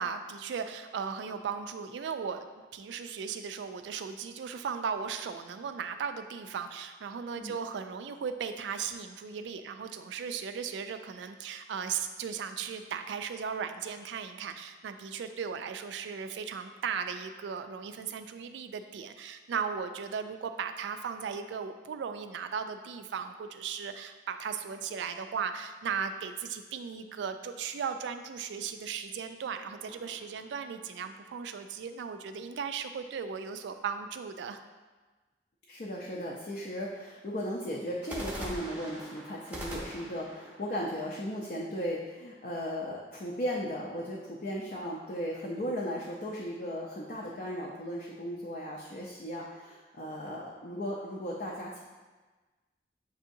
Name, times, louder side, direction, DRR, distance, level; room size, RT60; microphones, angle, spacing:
voice 1, 0.0-2.5 2.7-34.6, right 6 dB, 80° right, 8 dB, 0.3 m, -37 dB
sound 1, 29.8-31.3 38.0-42.0, right 1 dB, 10° right, 0.6 m, -43 dB
voice 2, 35.7-51.8, equal, 50° left, -4 dB, 0.5 m, -36 dB
7.1 x 2.7 x 2.6 m, 1.3 s
head